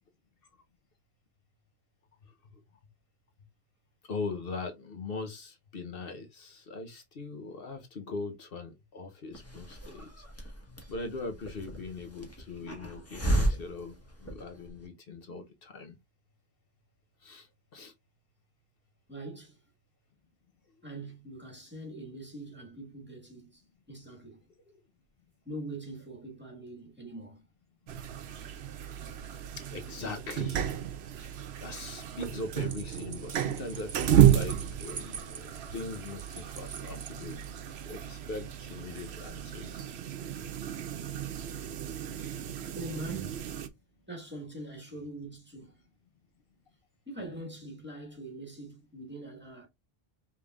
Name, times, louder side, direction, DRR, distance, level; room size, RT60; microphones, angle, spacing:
voice 1, 4.1-10.6 10.9-16.0 17.2-17.9 24.7-24.8 29.6-30.7 31.2-37.4 37.7-39.8, left 3 dB, 65° left, 1.0 m, -41 dB
Hiss, 9.3-14.8, right 1 dB, 15° left, 1.2 m, -34 dB
voice 2, 19.1-19.6 20.8-23.6 23.9-24.4 25.4-27.4 42.7-43.7 44.1-45.8 47.1-49.7, right 1 dB, 10° right, 1.6 m, -43 dB
sound 1, 27.9-43.7, right 10 dB, 85° right, 0.9 m, -31 dB
sound 2, 31.9-37.9, right 6 dB, 55° right, 0.7 m, -44 dB
5.1 x 3.5 x 2.4 m
omnidirectional pair, 1.0 m